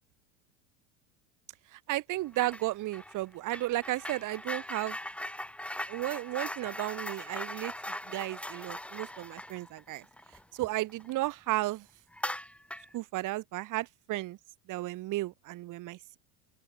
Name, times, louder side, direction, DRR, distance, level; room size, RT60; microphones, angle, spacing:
voice 1, 1.7-5.0 5.9-10.0 10.5-11.8 12.9-14.4 14.7-16.2, right 17 dB, 45° right, 1.6 m, -34 dB
sound 1, 2.3-2.7 2.9-11.1 11.5-11.6 12.1-13.0, left 1 dB, 5° left, 2.4 m, -40 dB
open air
hypercardioid pair, 90°, 42 cm